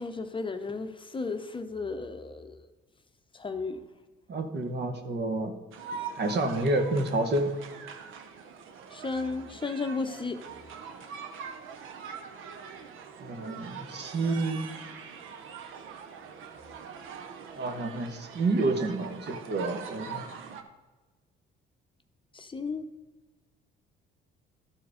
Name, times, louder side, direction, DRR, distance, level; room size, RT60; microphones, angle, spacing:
voice 1, 0.0-2.5 3.3-3.8 8.9-10.4 22.3-22.8, left 4 dB, 25° left, 7 dB, 0.7 m, -34 dB
voice 2, 4.3-5.6 6.2-7.5 13.2-14.6 17.5-20.3, right 2 dB, 55° right, 6 dB, 1.2 m, -29 dB
sound 1, 5.7-20.6, right 6 dB, 75° right, 0.9 m, -43 dB
13.0 x 4.6 x 5.0 m, 1.3 s
cardioid pair, 85°, 21 cm